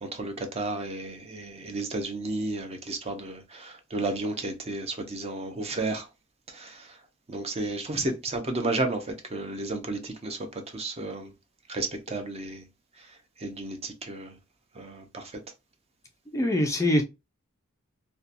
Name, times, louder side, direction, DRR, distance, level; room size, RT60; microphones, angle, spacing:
voice 1, 0.0-6.1 6.5-7.0 7.3-11.3 11.7-12.7 13.0-13.1 13.4-14.4 14.7-15.4, right 2 dB, 30° right, 0.6 m, -33 dB
voice 2, 16.3-17.0, left 1 dB, 15° left, 0.3 m, -23 dB
2.7 x 2.2 x 2.4 m
head